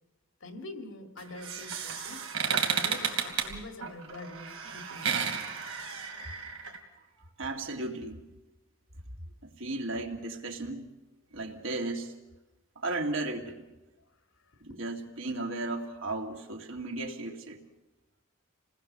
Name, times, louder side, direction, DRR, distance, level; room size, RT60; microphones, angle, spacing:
voice 1, 0.4-5.1 14.7-14.8, left 2 dB, 70° left, 6 dB, 2.1 m, -45 dB
sound 1, 1.2-6.8, right 7 dB, 85° right, 3.0 m, -33 dB
voice 2, 7.4-8.2 9.4-10.9 11.3-12.1 12.8-13.7 14.6-17.6, right 2 dB, 70° right, 2 dB, 2.4 m, -35 dB
27.5 x 19.0 x 6.8 m, 1.1 s
head